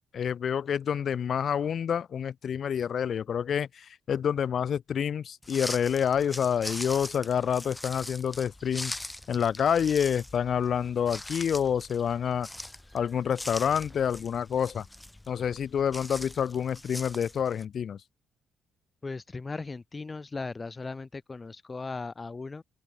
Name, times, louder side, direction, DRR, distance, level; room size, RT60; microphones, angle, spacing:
voice 1, 0.1-8.9 9.3-12.5 12.9-14.9 15.3-18.0, left 8 dB, 55° left, 1.4 m, -28 dB
sound 1, 5.4-17.6, left 1 dB, 10° left, 1.1 m, -41 dB
voice 2, 19.0-22.6, left 3 dB, 25° left, 0.7 m, -37 dB
cardioid pair, 90°, 0 cm